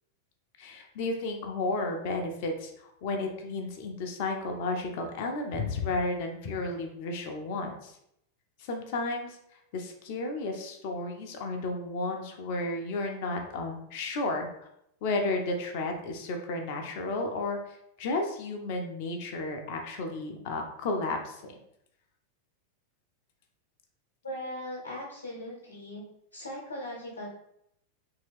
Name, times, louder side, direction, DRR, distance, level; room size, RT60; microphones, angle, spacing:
voice 1, 0.6-8.0 8.6-9.4 9.7-14.5 15.0-21.5, left 2 dB, 45° left, 3 dB, 0.5 m, -33 dB
voice 2, 24.2-26.0 26.3-27.3, left 1 dB, 75° left, -4 dB, 0.8 m, -39 dB
2.9 x 2.7 x 3.3 m, 0.76 s
figure-of-eight pair, 90°, 0 cm